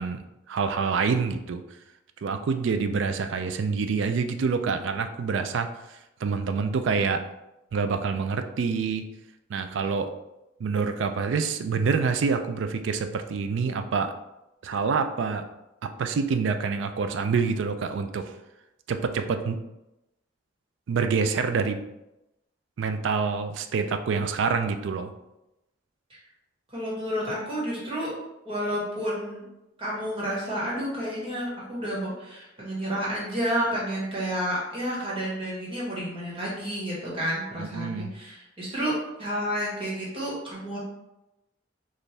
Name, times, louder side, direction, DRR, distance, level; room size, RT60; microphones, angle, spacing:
voice 1, 0.0-1.6 2.2-7.2 7.7-9.1 9.5-10.1 10.6-14.1 14.6-15.5 15.8-18.3 18.9-19.6 20.9-21.8 22.8-25.1 37.6-38.1, right 5 dB, 70° right, 8 dB, 0.3 m, -27 dB
voice 2, 26.7-28.1 28.4-29.4 29.8-38.9 39.2-40.8, equal, 30° right, -6 dB, 1.5 m, -30 dB
4.2 x 2.5 x 3.3 m, 0.93 s
head